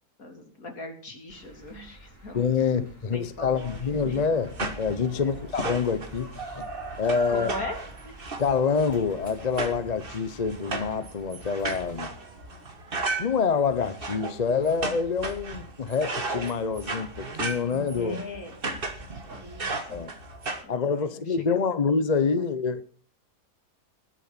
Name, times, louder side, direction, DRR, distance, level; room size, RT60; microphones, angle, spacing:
voice 1, 0.2-4.3 5.1-5.5 7.3-7.8 8.0-8.2 18.0-18.6 19.3-20.1 20.6-21.8 22.4-22.5, left 2 dB, 55° left, 3.5 m, -40 dB
sound 1, 1.3-12.0, right 2 dB, 10° left, 4.7 m, -49 dB
voice 2, 2.3-6.6 7.0-7.5 8.4-12.1 13.2-18.2 19.9-20.1 20.7-22.8, left 5 dB, 35° left, 0.6 m, -26 dB
sound 2, 3.6-20.6, right 3 dB, 35° right, 1.6 m, -36 dB
20.5 x 7.1 x 5.9 m
omnidirectional pair, 1.8 m